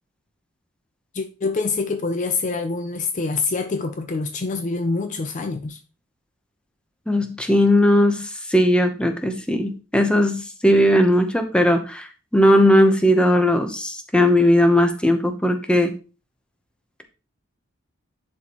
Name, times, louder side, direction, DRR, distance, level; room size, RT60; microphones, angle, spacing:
voice 1, 1.1-5.8, left 3 dB, 35° left, 0.5 m, -25 dB
voice 2, 7.1-12.1 12.3-15.9, left 1 dB, 5° left, 0.8 m, -18 dB
10.5 x 4.4 x 3.0 m
head